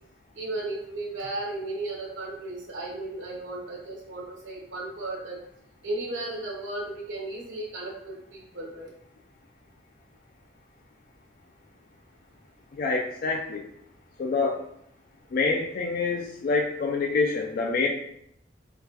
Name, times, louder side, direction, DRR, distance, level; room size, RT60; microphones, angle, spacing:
voice 1, 0.3-5.4 5.8-8.9, right 2 dB, 80° right, -2 dB, 0.8 m, -35 dB
voice 2, 12.7-13.6 14.2-14.6 15.3-17.9, left 4 dB, 50° left, 1 dB, 0.3 m, -26 dB
3.8 x 2.1 x 2.8 m, 0.71 s
head